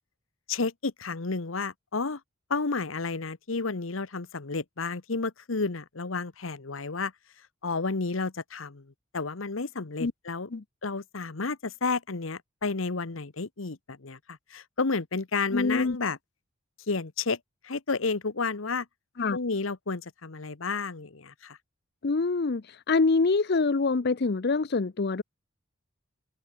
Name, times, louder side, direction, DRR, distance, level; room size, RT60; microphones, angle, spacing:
voice 1, 0.5-2.2 2.5-7.1 7.6-10.5 10.8-16.2 16.9-17.4 17.6-18.9 19.3-21.6, left 4 dB, 80° left, 1.1 m, -31 dB
voice 2, 15.5-16.0 19.2-19.4 22.0-25.2, left 3 dB, 55° left, 0.6 m, -25 dB
head